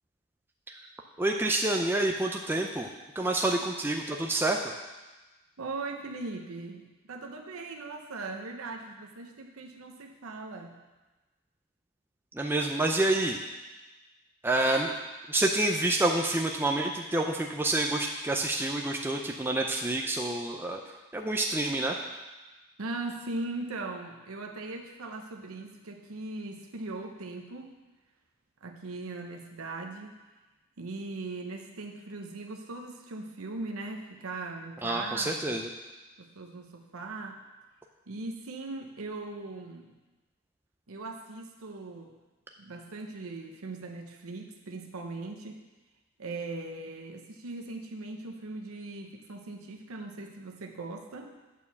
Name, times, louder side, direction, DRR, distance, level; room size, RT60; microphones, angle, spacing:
voice 1, 1.2-2.9 3.2-4.6 12.3-13.4 14.4-14.9 15.3-20.8 21.1-22.0 34.8-35.7, right 2 dB, 10° right, 2 dB, 0.4 m, -28 dB
voice 2, 5.6-10.8 14.6-14.9 22.8-27.8 28.6-30.2 30.8-35.6 36.2-37.4 38.1-39.9 40.9-42.1 42.6-45.6 46.2-51.3, right 3 dB, 80° right, 3 dB, 0.8 m, -39 dB
8.7 x 4.6 x 7.0 m, 1.2 s
head